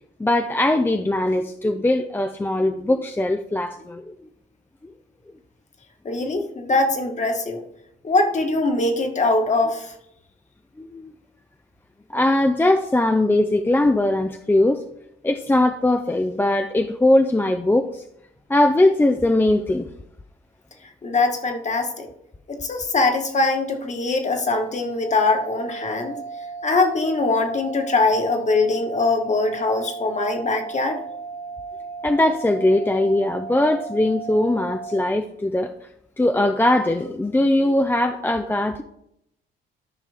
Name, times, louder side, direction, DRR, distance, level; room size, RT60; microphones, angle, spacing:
voice 1, 0.2-4.1 4.8-4.9 6.3-6.4 10.8-11.1 12.1-14.8 15.2-18.0 18.5-19.9 32.0-35.7 36.2-38.8, left 1 dB, 10° left, 7 dB, 0.5 m, -20 dB
voice 2, 6.0-7.6 8.0-9.9 21.0-22.1 22.5-26.1 26.6-31.0, left 3 dB, 35° left, 4 dB, 1.5 m, -22 dB
sound 1, 25.0-35.0, right 4 dB, 85° left, 2.0 m, -35 dB
13.0 x 5.1 x 3.5 m, 0.77 s
cardioid pair, 90°, 20 cm